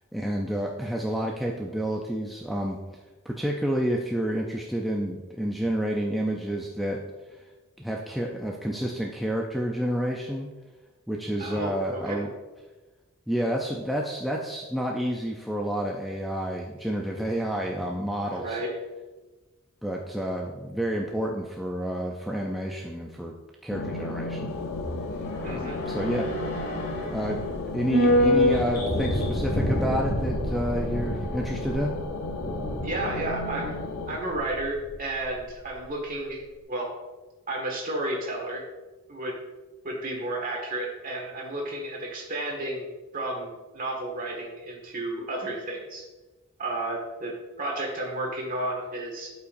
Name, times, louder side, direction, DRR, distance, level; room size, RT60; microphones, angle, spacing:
voice 1, 0.1-2.8 3.2-7.0 7.3-7.4 7.8-10.5 11.1-12.3 13.3-18.6 19.8-23.3 23.6-24.6 25.5-26.3 27.0-27.4 27.7-32.0, equal, ahead, -1 dB, 0.4 m, -29 dB
voice 2, 11.4-12.2 18.3-18.7 25.4-25.8 32.8-33.8 34.1-36.4 36.7-36.9 37.5-38.7 39.1-39.4 39.8-42.9 43.1-46.0 46.6-49.3, right 1 dB, 40° right, 0 dB, 1.8 m, -32 dB
sound 1, 23.7-34.2, left 2 dB, 90° left, 0.7 m, -34 dB
sound 2, 24.5-34.9 35.2-35.3, left 1 dB, 50° left, 1.6 m, -28 dB
12.0 x 5.6 x 2.6 m, 1.2 s
head